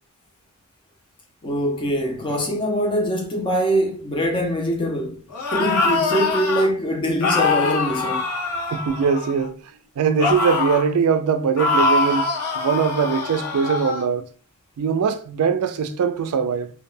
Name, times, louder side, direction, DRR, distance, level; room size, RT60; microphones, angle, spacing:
voice 1, 1.4-5.2 5.5-8.3, equal, 20° left, 0.5 m, -23 dB
sound 1, 5.3-6.7 7.2-9.5 10.2-10.9 11.6-14.0, left 3 dB, 90° left, 0.5 m, -23 dB
voice 2, 8.7-9.6 10.0-12.3 12.5-14.2 14.8-16.7, right 6 dB, 75° right, 0.3 m, -21 dB
2.2 x 2.1 x 3.1 m
head